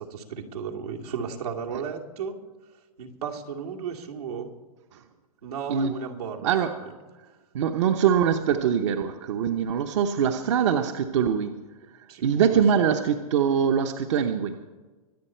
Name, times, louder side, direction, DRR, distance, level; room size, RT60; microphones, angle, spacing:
voice 1, 0.0-2.4 3.0-4.5 5.4-6.5 6.8-6.9 10.5-10.7 12.1-12.6, right 7 dB, 85° right, -1 dB, 2.7 m, -34 dB
voice 2, 7.5-11.6 12.2-14.6, right 8 dB, 50° right, 6 dB, 0.9 m, -23 dB
24.5 x 8.4 x 4.5 m, 1.2 s
hypercardioid pair, 155°, 19 cm